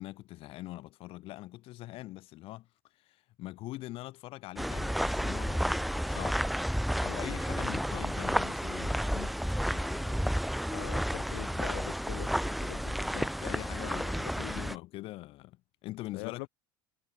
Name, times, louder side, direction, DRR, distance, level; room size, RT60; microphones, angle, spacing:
voice 1, 0.0-2.7 3.0-6.4 7.0-9.4 9.7-10.4 12.9-16.5, left 17 dB, 60° left, 6.8 m, -43 dB
sound 1, 4.6-14.8, equal, ahead, 0.3 m, -31 dB
voice 2, 10.7-12.9 14.4-14.7 16.1-16.5, left 33 dB, 75° left, 1.6 m, -43 dB
supercardioid pair, 100°, 11 cm